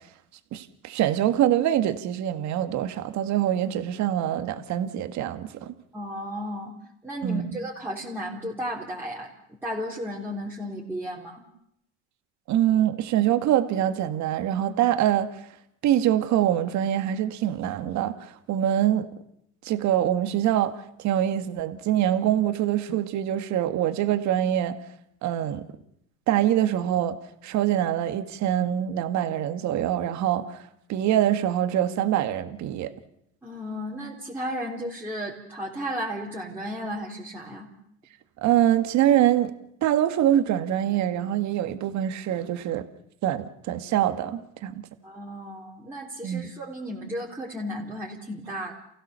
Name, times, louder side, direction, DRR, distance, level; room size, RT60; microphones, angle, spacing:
voice 1, 0.5-5.7 7.2-7.5 12.5-15.3 15.8-19.1 19.6-20.7 21.0-24.8 25.2-25.6 26.3-27.2 27.4-30.6 30.9-32.9 38.4-39.5 39.8-42.9 43.2-44.8 46.2-46.5, right 11 dB, 50° right, 9 dB, 1.9 m, -24 dB
voice 2, 5.9-6.7 7.0-11.4 33.4-37.7 45.0-48.7, equal, 5° right, -6 dB, 3.8 m, -34 dB
29.0 x 16.0 x 6.9 m, 0.75 s
supercardioid pair, 110°, 35 cm